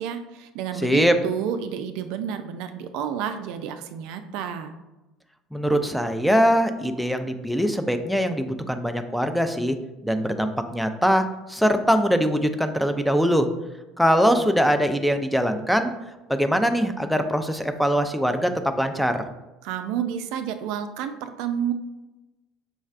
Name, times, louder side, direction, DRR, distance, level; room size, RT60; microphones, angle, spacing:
voice 1, 0.0-4.7 19.6-21.7, right 8 dB, 70° right, 8 dB, 0.3 m, -30 dB
voice 2, 0.8-1.1 5.5-9.8 10.0-13.5 14.0-15.9 16.3-18.5 18.8-19.2, equal, ahead, 8 dB, 0.5 m, -22 dB
5.4 x 3.1 x 2.4 m, 1.0 s
hypercardioid pair, 75°, 0 cm